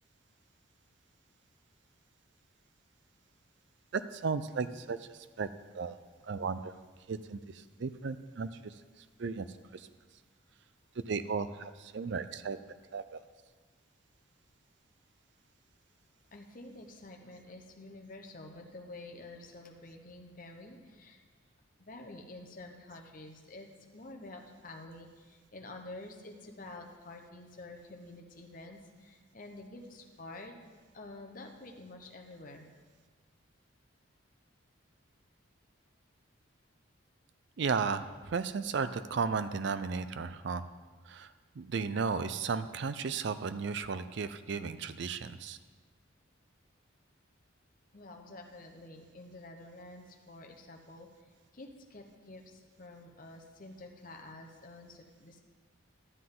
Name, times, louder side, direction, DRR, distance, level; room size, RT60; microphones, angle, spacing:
voice 1, 3.9-5.1 5.4-5.5 5.7-5.9 6.2-6.7 7.1-8.7 9.2-9.5 9.7-9.9 11.1-12.6 12.9-13.2 37.6-40.6 41.1-45.6, right 5 dB, 60° right, 12 dB, 0.4 m, -34 dB
voice 2, 16.3-21.2 21.8-30.5 30.9-32.7 47.9-51.1 51.5-55.4, left 2 dB, 45° left, 3 dB, 0.9 m, -49 dB
12.0 x 7.6 x 3.8 m, 1.4 s
head